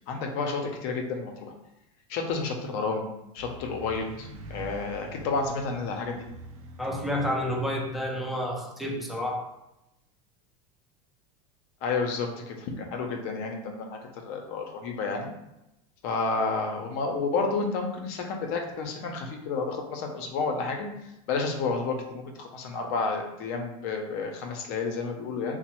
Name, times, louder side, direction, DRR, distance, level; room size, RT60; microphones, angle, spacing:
voice 1, 0.1-1.5 2.1-3.1 3.3-6.3 11.8-15.3 16.0-20.9 21.3-25.6, left 4 dB, 55° left, 3 dB, 0.6 m, -30 dB
sound 1, 3.4-8.0, right 2 dB, 90° right, 0.4 m, -45 dB
voice 2, 6.8-9.4, equal, ahead, -2 dB, 0.4 m, -30 dB
3.0 x 2.1 x 2.9 m, 0.89 s
supercardioid pair, 150°, 18 cm